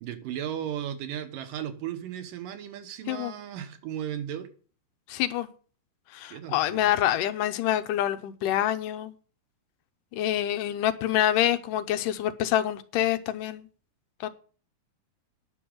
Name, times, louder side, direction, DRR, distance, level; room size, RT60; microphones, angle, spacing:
voice 1, 0.0-4.5 6.3-6.9, right 10 dB, 85° right, 2.7 m, -35 dB
voice 2, 5.1-5.5 6.1-9.1 10.1-13.7 14.2-14.3, left 12 dB, 80° left, 2.3 m, -26 dB
10.0 x 6.3 x 8.7 m
omnidirectional pair, 3.8 m